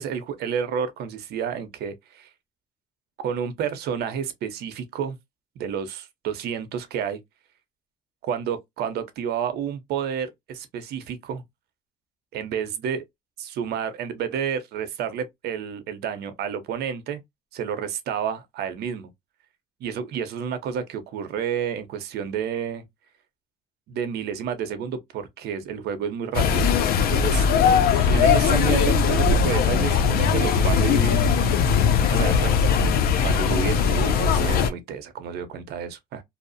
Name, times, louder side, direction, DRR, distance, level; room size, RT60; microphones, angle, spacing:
voice 1, 0.0-2.3 3.2-5.2 5.6-7.2 8.2-11.4 12.3-13.0 13.4-17.2 17.5-19.1 19.8-22.8 23.9-26.7 27.0-27.5 27.9-31.3 31.9-32.7 33.2-36.2, right 8 dB, 75° right, 0.6 m, -30 dB
sound 1, 26.3-34.7, left 6 dB, 65° left, 0.5 m, -20 dB
2.7 x 2.0 x 2.6 m
cardioid pair, 110°, 17 cm